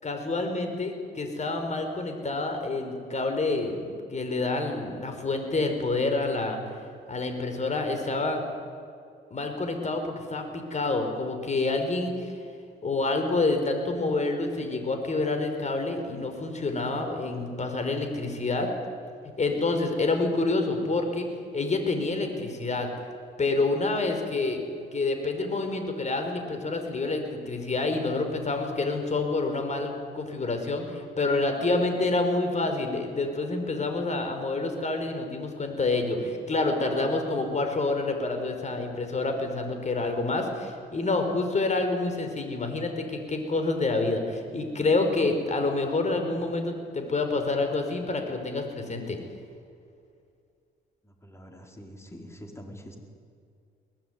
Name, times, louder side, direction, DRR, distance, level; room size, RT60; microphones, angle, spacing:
voice 1, 0.0-6.6 7.1-8.4 9.3-12.3 12.8-18.7 19.4-21.3 21.5-22.9 23.4-24.6 24.9-49.2, left 3 dB, 35° left, 6 dB, 5.0 m, -28 dB
voice 2, 51.0-53.0, equal, 15° left, 3 dB, 4.5 m, -45 dB
22.5 x 18.5 x 9.6 m, 2.3 s
cardioid pair, 90°, 20 cm